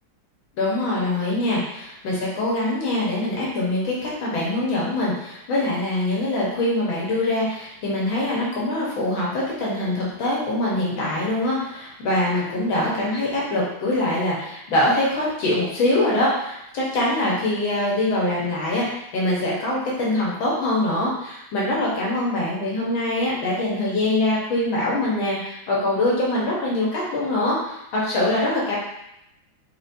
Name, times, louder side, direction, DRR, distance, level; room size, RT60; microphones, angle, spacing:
voice 1, 0.6-28.8, left 1 dB, 85° left, -5 dB, 2.0 m, -23 dB
5.0 x 2.9 x 2.7 m, 0.82 s
omnidirectional pair, 2.1 m